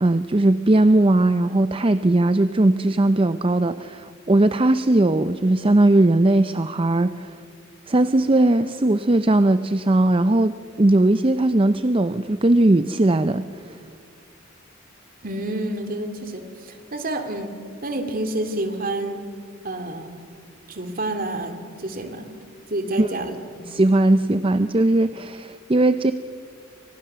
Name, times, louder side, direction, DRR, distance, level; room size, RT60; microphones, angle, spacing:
voice 1, 0.0-7.3 7.9-13.8 23.0-23.1 23.7-26.1, right 2 dB, 25° right, 11 dB, 0.6 m, -19 dB
voice 2, 15.2-17.5 17.8-19.2 19.6-20.1 20.7-22.3 22.7-23.6, right 1 dB, 45° right, 6 dB, 2.7 m, -29 dB
29.5 x 25.0 x 6.8 m, 2.3 s
head